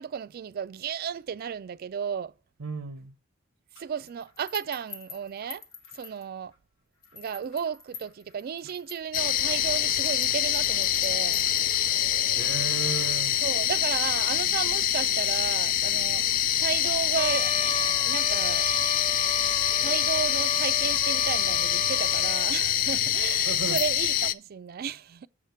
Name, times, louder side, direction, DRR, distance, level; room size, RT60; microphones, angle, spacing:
voice 1, 0.0-2.3 3.8-5.6 5.9-6.5 7.1-11.4 13.4-17.5 18.0-18.7 19.8-25.3, right 7 dB, 50° right, 0.3 m, -33 dB
voice 2, 2.6-3.1 12.4-13.4 23.3-23.8, right 5 dB, 85° right, 0.7 m, -34 dB
sound 1, 3.7-6.6 7.0-12.2, left 5 dB, 70° left, 1.0 m, -47 dB
sound 2, 9.1-24.3, left 11 dB, 45° left, 0.3 m, -25 dB
Trumpet, 17.2-22.5, left 1 dB, 25° left, 0.7 m, -34 dB
7.3 x 6.5 x 4.5 m
head